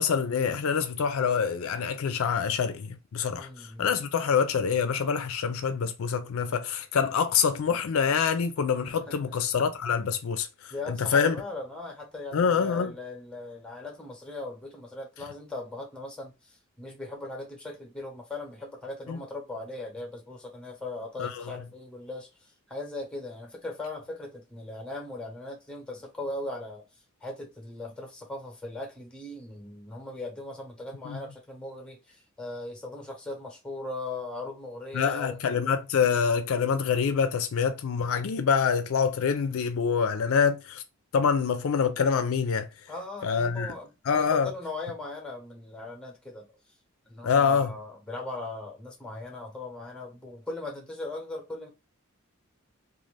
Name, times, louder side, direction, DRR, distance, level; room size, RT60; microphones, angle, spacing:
voice 1, 0.0-11.4 12.3-12.9 19.1-19.2 21.2-21.4 31.0-31.2 34.9-40.8 41.1-42.7 43.2-43.7 44.1-44.5 47.2-47.7, left 6 dB, 70° left, 0.4 m, -26 dB
voice 2, 3.3-3.9 9.1-9.2 10.7-26.9 27.2-35.4 42.9-43.9 44.2-46.5 47.1-51.7, left 2 dB, 5° left, 0.8 m, -39 dB
2.5 x 2.4 x 3.2 m
head